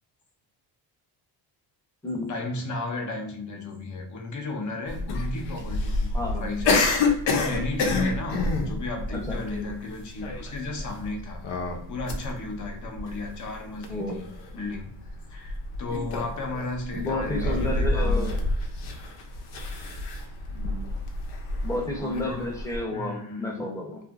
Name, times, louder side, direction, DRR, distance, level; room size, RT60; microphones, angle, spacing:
voice 1, 2.3-11.4 11.9-14.1 14.5-14.9 15.3-18.3 22.0-22.5 22.9-23.6, left 3 dB, 45° left, 4 dB, 0.8 m, -34 dB
sound 1, 4.9-22.8, left 2 dB, 75° left, 0.7 m, -28 dB
voice 2, 6.1-6.5 9.3-9.4 13.9-14.2 16.9-18.4 20.5-20.9 21.6-24.0, left 1 dB, 5° left, -1 dB, 0.7 m, -31 dB
2.7 x 2.4 x 2.4 m, 0.68 s
cardioid pair, 110°, 43 cm